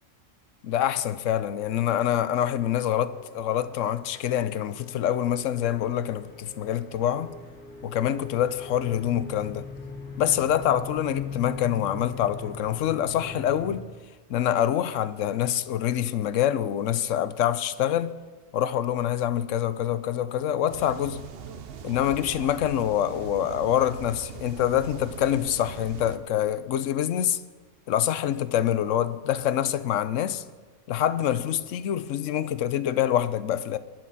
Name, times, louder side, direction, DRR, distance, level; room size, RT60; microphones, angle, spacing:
voice 1, 0.6-7.3 7.8-9.7 10.2-13.9 14.3-18.1 18.5-21.2 21.8-27.4 27.9-30.4 30.9-33.8, left 10 dB, 85° left, 1.0 m, -26 dB
sound 1, 3.1-13.8, left 3 dB, 60° left, 2.0 m, -41 dB
sound 2, 20.7-26.2, right 7 dB, 55° right, 0.9 m, -41 dB
23.0 x 11.0 x 4.1 m
omnidirectional pair, 1.3 m